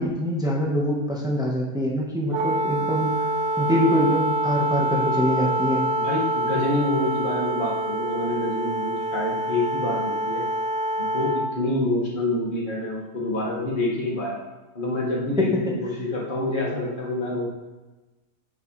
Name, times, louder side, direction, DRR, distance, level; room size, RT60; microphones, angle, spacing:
voice 1, 0.0-3.3 3.6-5.9 15.4-15.5, equal, 5° right, -2 dB, 1.1 m, -24 dB
Wind instrument woodwind instrument, 2.3-11.5, right 1 dB, 60° right, 0.6 m, -26 dB
voice 2, 6.0-10.5 11.0-14.4 14.7-17.5, left 2 dB, 35° left, -4 dB, 1.9 m, -27 dB
7.0 x 6.4 x 3.2 m, 1.2 s
omnidirectional pair, 1.5 m